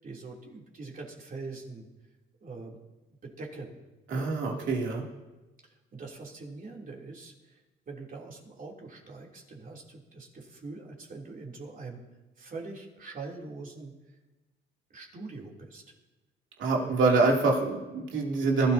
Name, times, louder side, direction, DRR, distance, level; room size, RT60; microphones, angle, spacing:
voice 1, 0.0-1.8 2.4-2.8 3.4-3.8 4.1-4.3 5.9-7.3 7.9-12.0 12.4-13.9 14.9-15.8 16.7-16.9, right 3 dB, 45° right, -2 dB, 3.3 m, -43 dB
voice 2, 4.1-5.0 16.6-18.7, right 3 dB, 75° right, -2 dB, 3.0 m, -25 dB
21.0 x 13.0 x 2.9 m, 1.1 s
cardioid pair, 90°, 20 cm